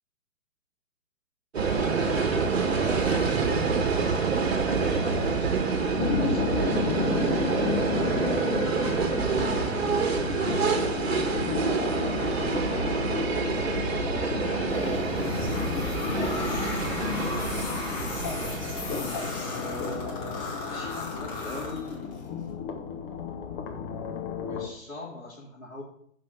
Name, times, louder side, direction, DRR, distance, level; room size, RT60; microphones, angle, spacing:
sound 1, 1.5-19.3, right 5 dB, 50° right, 1.5 m, -27 dB
voice 1, 2.7-4.1 7.9-8.7 14.0-15.7, equal, 10° right, -8 dB, 1.9 m, -41 dB
voice 2, 6.0-6.8 10.4-10.8 12.1-13.2 16.6-17.3 19.4-22.0 24.4-25.8, left 2 dB, 85° left, -8 dB, 3.2 m, -41 dB
sound 2, 6.0-24.7, left 6 dB, 20° left, 0.8 m, -33 dB
sound 3, 14.7-22.3, left 3 dB, 35° left, 4.1 m, -36 dB
9.1 x 5.3 x 5.8 m, 0.66 s
figure-of-eight pair, 125°, 39 cm